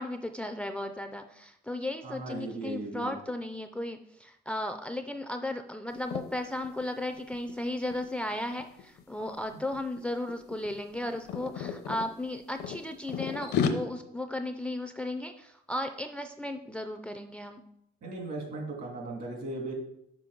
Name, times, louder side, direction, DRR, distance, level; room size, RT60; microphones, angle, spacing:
voice 1, 0.0-17.6, left 1 dB, 5° left, 7 dB, 0.4 m, -35 dB
voice 2, 2.0-3.1 18.0-19.7, right 2 dB, 60° right, 1 dB, 2.1 m, -37 dB
sound 1, 5.9-6.2 6.6-6.8 7.1-9.0 9.7-10.0 10.3-12.1 12.6-13.7, left 7 dB, 75° left, 0.7 m, -33 dB
5.9 x 4.8 x 3.8 m, 0.79 s
cardioid pair, 110°, 17 cm